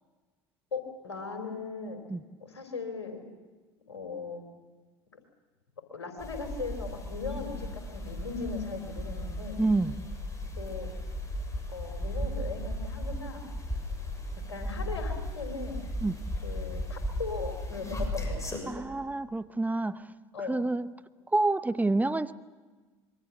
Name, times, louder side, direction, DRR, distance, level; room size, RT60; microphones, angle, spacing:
voice 1, 0.7-2.0 2.4-3.2 3.9-4.4 5.9-9.6 10.6-10.9 11.7-13.5 14.5-15.8 16.4-18.7 20.3-20.6, left 4 dB, 85° left, 5 dB, 4.0 m, -38 dB
sound 1, 6.2-18.6, equal, 20° left, 7.0 m, -36 dB
voice 2, 9.6-10.0 16.0-16.2 18.7-20.1 20.5-20.9 21.3-22.3, right 2 dB, 10° right, 12 dB, 0.8 m, -28 dB
26.0 x 23.0 x 7.2 m, 1.3 s
hypercardioid pair, 70°, 14 cm